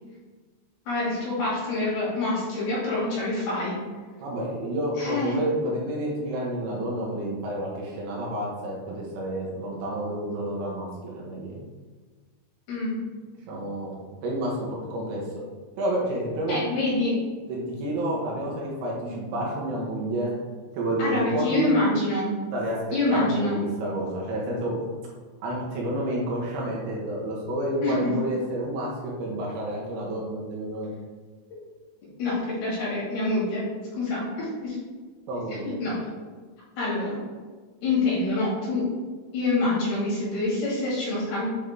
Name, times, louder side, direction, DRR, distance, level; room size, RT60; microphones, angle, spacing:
voice 1, 0.9-3.8 5.0-5.4 12.7-13.0 16.5-17.2 21.0-22.3 22.9-23.6 27.8-28.1 32.2-33.6 34.0-34.8 35.6-36.0 36.8-37.2 37.8-38.9 39.3-41.5, left 2 dB, 60° left, -8 dB, 3.5 m, -26 dB
voice 2, 4.2-11.6 13.5-15.2 15.8-16.6 17.5-20.3 20.7-21.7 22.5-22.8 23.1-24.7 25.4-30.9 35.3-35.8, right 1 dB, 75° right, -4 dB, 3.2 m, -29 dB
8.0 x 3.6 x 3.5 m, 1.4 s
omnidirectional pair, 5.6 m